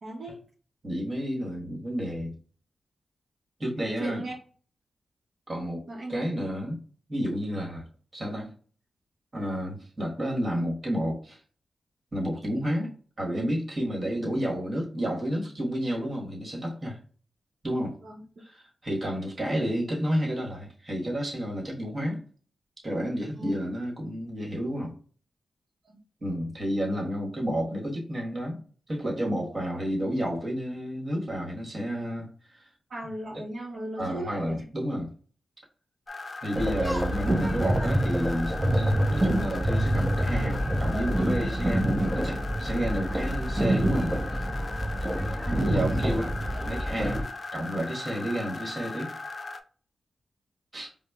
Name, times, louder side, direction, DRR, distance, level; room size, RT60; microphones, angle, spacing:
voice 1, 0.0-0.4 4.0-4.3 5.9-6.2 18.0-18.2 23.4-23.5 25.8-26.0 32.9-34.4 45.5-45.7, right 1 dB, 60° right, 0.7 m, -37 dB
voice 2, 0.8-2.4 3.6-4.2 5.5-5.8 6.1-6.8 7.1-7.9 8.1-8.5 9.3-11.4 12.1-12.9 13.2-17.0 17.6-17.9 18.4-22.2 22.8-24.9 26.2-28.6 28.9-32.7 34.0-35.1 36.4-44.2 45.6-46.3 46.6-47.2 47.5-49.1 50.7-50.9, equal, 35° right, 1.3 m, -30 dB
sound 1, 36.1-49.6, left 3 dB, 40° left, 0.4 m, -39 dB
sound 2, 36.6-47.2, right 1 dB, 20° right, 0.7 m, -27 dB
4.8 x 2.0 x 2.3 m
wide cardioid pair, 85°, 0 cm